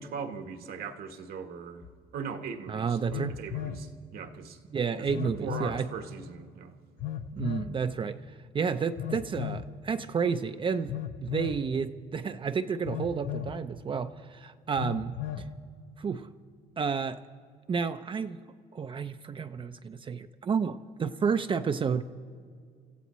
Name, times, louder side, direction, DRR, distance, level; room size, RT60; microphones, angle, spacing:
voice 1, 0.0-1.9 2.1-4.6 5.0-6.8, right 6 dB, 65° right, 1.2 m, -39 dB
Telephone, 1.8-1.9 3.1-3.8 5.1-5.8 7.0-7.7 9.0-9.7 10.9-11.6 12.9-13.6 14.8-15.5, left 10 dB, 55° left, 0.8 m, -35 dB
voice 2, 2.7-3.4 4.7-5.9 7.4-8.2 8.5-15.2 16.0-16.3 16.8-17.2 17.7-18.4 18.7-22.0, right 6 dB, 30° right, 0.5 m, -31 dB
27.5 x 15.0 x 3.0 m
cardioid pair, 110°, 17 cm